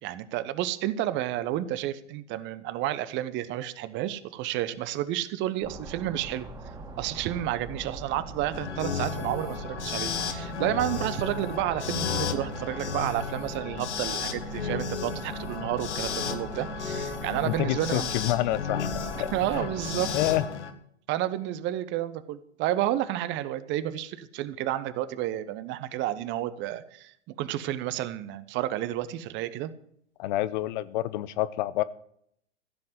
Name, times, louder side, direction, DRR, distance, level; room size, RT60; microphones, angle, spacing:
voice 1, 0.0-6.5 7.0-18.1 19.2-20.1 21.1-29.7, right 13 dB, 30° right, 14 dB, 1.0 m, -31 dB
sound 1, 5.6-20.4, right 3 dB, 10° right, 2.3 m, -42 dB
sound 2, 8.5-20.7, left 6 dB, 70° left, 1.7 m, -33 dB
voice 2, 17.4-19.7 20.1-20.4 30.2-31.8, left 15 dB, 40° left, 17 dB, 0.7 m, -28 dB
15.0 x 7.7 x 7.6 m, 0.69 s
figure-of-eight pair, 95°, 35 cm